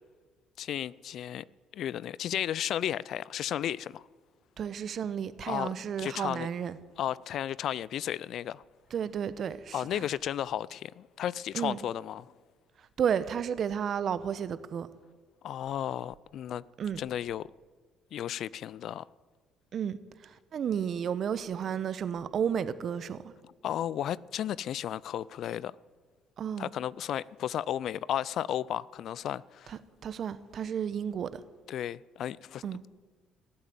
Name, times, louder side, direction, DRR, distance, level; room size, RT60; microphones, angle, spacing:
voice 1, 0.6-1.4 1.7-4.1 5.5-6.5 7.0-8.6 9.7-12.3 15.4-16.6 17.0-17.5 18.1-19.1 23.6-25.8 26.6-29.7 31.7-32.9, left 11 dB, 65° left, 0.4 m, -34 dB
voice 2, 4.6-6.8 8.9-10.0 11.5-11.8 13.0-14.9 16.8-17.0 19.7-20.0 20.2-23.3 26.4-26.7 29.7-31.4 32.6-32.8, right 8 dB, 55° right, 1.0 m, -32 dB
17.5 x 8.3 x 9.2 m
supercardioid pair, 60°, 0 cm